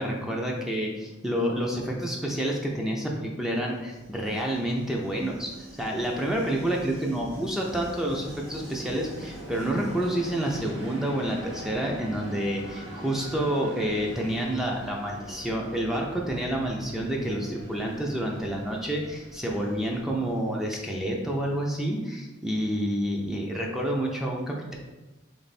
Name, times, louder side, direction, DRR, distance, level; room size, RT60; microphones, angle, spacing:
voice 1, 0.0-24.7, right 1 dB, ahead, -1 dB, 0.5 m, -29 dB
Train, 3.6-21.4, right 1 dB, 75° right, 1.1 m, -43 dB
3.5 x 3.3 x 4.1 m, 1.1 s
head